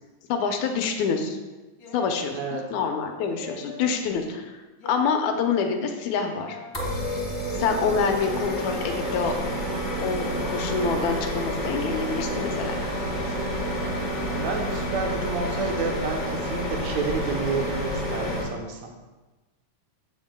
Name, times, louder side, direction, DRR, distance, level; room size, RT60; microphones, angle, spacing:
voice 1, 0.3-1.4 1.9-4.5 4.9-6.6 7.5-9.4 10.0-12.8, left 5 dB, 80° left, 4 dB, 2.1 m, -26 dB
sound 1, 1.8-2.4 3.3-3.9 4.8-5.2 6.2-6.7 7.6-8.1 8.9-9.2, left 2 dB, 55° left, 1.3 m, -41 dB
voice 2, 2.3-2.6 13.2-13.7 14.4-18.9, right 4 dB, 75° right, 1 dB, 2.1 m, -31 dB
sound 2, 6.7-18.4, equal, 35° left, 0.7 m, -29 dB
14.5 x 6.1 x 2.2 m, 1.2 s
omnidirectional pair, 3.4 m